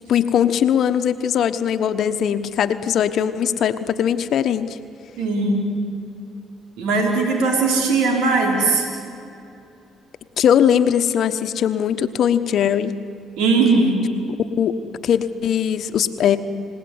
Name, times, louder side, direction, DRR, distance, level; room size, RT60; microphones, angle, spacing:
voice 1, 0.1-4.8 10.4-13.0 14.6-14.7 15.0-16.4, left 9 dB, 65° left, 10 dB, 1.1 m, -20 dB
voice 2, 5.2-5.7 6.8-8.9 13.4-14.1, right 3 dB, 80° right, 1 dB, 4.6 m, -19 dB
29.5 x 17.5 x 9.7 m, 2.7 s
supercardioid pair, 65°, 0 cm